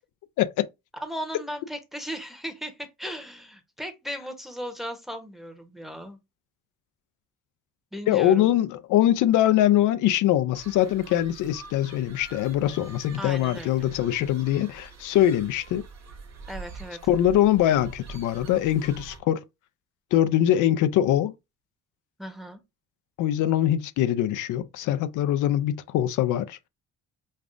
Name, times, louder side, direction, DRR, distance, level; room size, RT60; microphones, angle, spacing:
voice 1, 1.0-6.2 7.9-8.5 13.2-13.9 16.5-17.0 22.2-22.6, equal, ahead, 0.9 m, -36 dB
voice 2, 8.1-15.8 17.1-19.4 20.1-21.3 23.2-26.7, left 12 dB, 80° left, 0.5 m, -23 dB
sound 1, 10.5-19.2, right 5 dB, 60° right, 1.3 m, -45 dB
5.3 x 2.4 x 2.5 m
cardioid pair, 90°, 30 cm